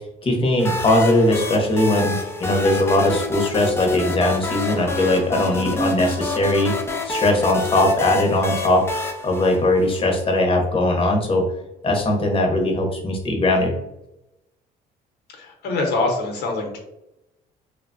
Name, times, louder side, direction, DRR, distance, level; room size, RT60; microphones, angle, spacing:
voice 1, 0.2-2.1 2.4-6.7 7.0-8.9 9.2-11.5 11.8-13.7, left 1 dB, 30° left, 1 dB, 0.8 m, -20 dB
sound 1, 0.6-10.2, left 2 dB, 15° left, 0.4 m, -27 dB
voice 2, 15.3-16.8, left 2 dB, 75° left, 1 dB, 0.9 m, -24 dB
3.1 x 2.2 x 2.5 m, 0.89 s
cardioid pair, 110°, 17 cm